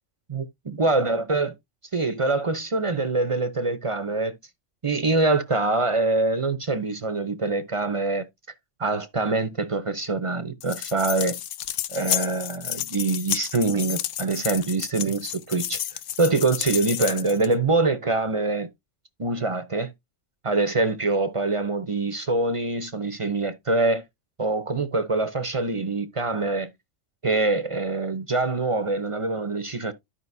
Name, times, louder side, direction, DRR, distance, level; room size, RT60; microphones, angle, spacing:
voice 1, 0.3-1.5 1.9-4.4 4.8-8.3 8.8-11.4 11.9-15.8 16.2-18.7 19.2-19.9 20.4-24.0 24.4-26.7 27.2-29.9, right 3 dB, 30° right, 0.7 m, -24 dB
sound 1, 10.6-17.5, left 11 dB, 80° left, 1.0 m, -31 dB
12.5 x 5.1 x 2.6 m
omnidirectional pair, 1.3 m